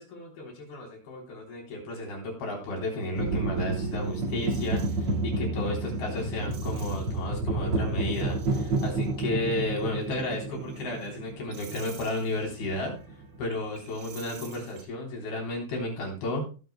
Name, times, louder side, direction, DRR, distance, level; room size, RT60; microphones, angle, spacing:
voice 1, 0.0-12.9 13.4-16.4, left 2 dB, 55° left, 0 dB, 5.2 m, -33 dB
sound 1, 3.1-14.8, right 2 dB, 50° right, 1.7 m, -31 dB
19.0 x 7.7 x 2.2 m, 0.34 s
omnidirectional pair, 5.5 m